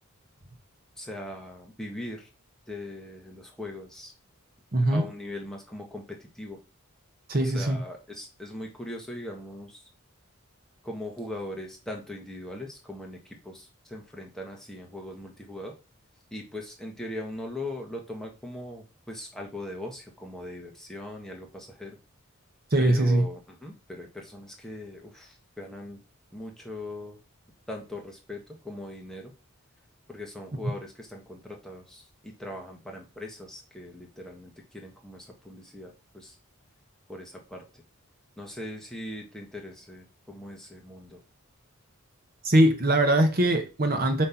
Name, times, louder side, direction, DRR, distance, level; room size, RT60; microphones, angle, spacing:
voice 1, 1.0-2.2 2.7-4.1 4.9-6.0 6.4-6.6 7.5-9.7 10.8-13.2 13.4-13.6 13.9-15.7 16.3-22.0 22.8-25.3 25.6-26.0 26.3-27.2 27.7-29.3 30.1-32.0 32.4-35.9 37.1-37.6 38.4-41.2, left 1 dB, ahead, 1.3 m, -40 dB
voice 2, 4.7-5.1 7.3-7.8 22.7-23.3 30.6-30.8 42.4-44.3, right 1 dB, 40° right, 1.0 m, -22 dB
7.6 x 3.2 x 5.8 m
head